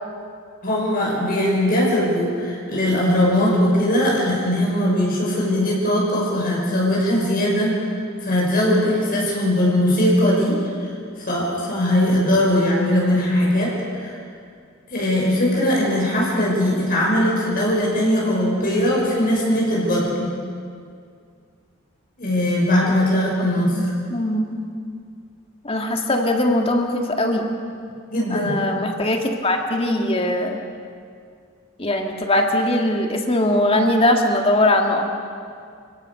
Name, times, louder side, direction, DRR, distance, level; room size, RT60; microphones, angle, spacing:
voice 1, 0.6-7.8 8.2-10.9 11.3-14.2 14.9-20.3 22.2-23.9 28.1-28.6, left 1 dB, 45° left, -4 dB, 5.9 m, -20 dB
voice 2, 24.1-24.7 25.6-27.5 28.3-30.6 31.8-35.0, left 1 dB, 25° left, 3 dB, 2.0 m, -20 dB
29.5 x 17.5 x 6.8 m, 2.3 s
head